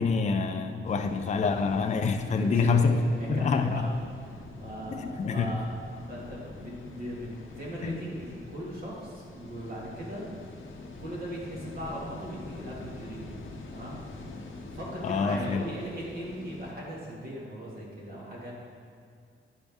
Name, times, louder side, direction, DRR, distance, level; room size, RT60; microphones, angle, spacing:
voice 1, 0.0-3.9 4.9-5.5 7.8-8.0 15.0-15.6, left 4 dB, 35° left, 5 dB, 0.4 m, -26 dB
sound 1, 0.8-16.7, left 2 dB, 70° left, 0.8 m, -45 dB
voice 2, 2.3-3.9 4.2-5.7 6.1-10.3 10.8-13.4 13.7-14.0 14.7-18.5, equal, 45° right, -5 dB, 1.8 m, -39 dB
10.0 x 5.2 x 3.5 m, 2.3 s
wide cardioid pair, 170°, 21 cm